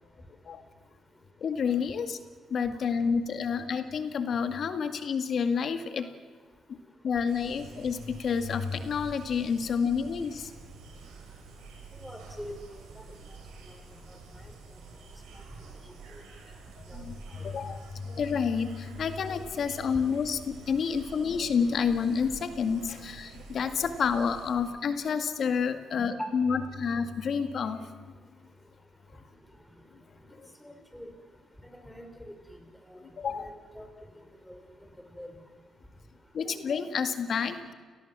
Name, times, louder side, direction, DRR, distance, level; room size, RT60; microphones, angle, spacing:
voice 1, 1.4-2.2 2.5-6.1 7.0-10.5 16.9-28.1 33.2-33.5 36.3-37.7, left 6 dB, 65° left, 8 dB, 2.0 m, -29 dB
sound 1, 7.3-24.5, right 4 dB, 85° right, 6.0 m, -48 dB
voice 2, 11.9-13.0 13.7-13.8 14.1-14.4 15.3-15.4 16.1-16.2 16.9-17.1 17.3-17.4 25.9-26.3 30.6-31.1 31.6-32.6 32.9-33.0 33.3-33.9 34.5-34.6 35.1-35.3, equal, 5° left, 5 dB, 6.0 m, -43 dB
29.0 x 19.0 x 7.5 m, 1.5 s
supercardioid pair, 55°, 0 cm